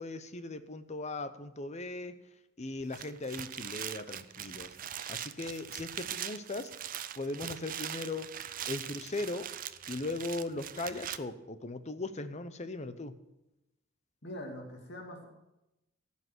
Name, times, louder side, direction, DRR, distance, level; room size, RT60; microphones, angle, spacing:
voice 1, 0.0-2.1 2.6-4.8 5.1-8.3 8.7-9.5 9.9-13.1, left 2 dB, 35° left, 11 dB, 0.8 m, -38 dB
sound 1, 2.8-11.2, right 10 dB, 45° right, 0.5 m, -41 dB
voice 2, 14.2-15.3, left 1 dB, 55° left, 1 dB, 2.3 m, -43 dB
15.5 x 5.8 x 7.9 m, 0.93 s
head